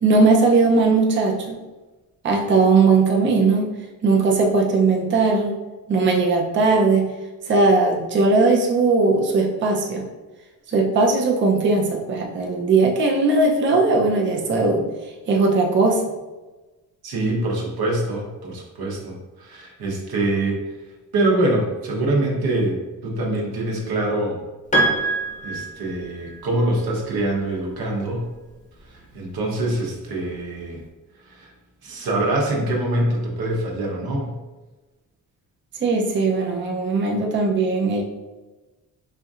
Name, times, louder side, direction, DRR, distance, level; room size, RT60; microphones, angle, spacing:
voice 1, 0.0-1.6 2.2-3.7 4.0-5.6 5.9-7.1 7.5-10.1 10.7-14.8 15.3-16.0 35.8-38.0, right 3 dB, 30° right, -1 dB, 0.5 m, -18 dB
voice 2, 17.0-20.6 21.1-24.4 25.0-25.1 25.4-28.3 28.9-30.8 31.3-31.5 31.8-34.3, right 1 dB, 75° right, -1 dB, 0.9 m, -24 dB
Piano, 24.7-26.4, right 2 dB, 20° left, 0.8 m, -24 dB
4.3 x 2.6 x 2.4 m, 1.2 s
cardioid pair, 105°, 37 cm